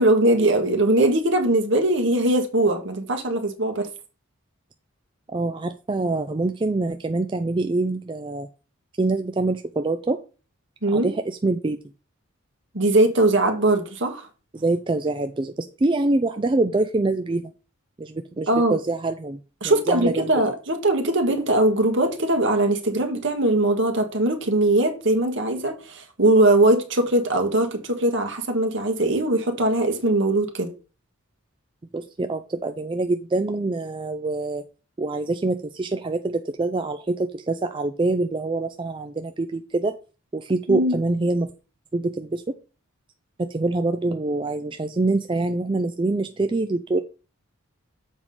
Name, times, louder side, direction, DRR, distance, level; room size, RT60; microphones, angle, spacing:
voice 1, 0.0-3.9 10.8-11.1 12.7-14.2 18.5-18.8 19.6-30.7 40.7-41.0, right 1 dB, 60° right, 1.6 m, -21 dB
voice 2, 5.3-8.5 9.0-10.2 10.9-11.8 14.5-17.5 18.0-19.4 19.6-20.3 31.9-34.6 35.0-40.0 40.3-41.5 41.9-42.5 43.4-47.0, right 2 dB, 20° right, 0.4 m, -25 dB
7.2 x 4.8 x 5.4 m
head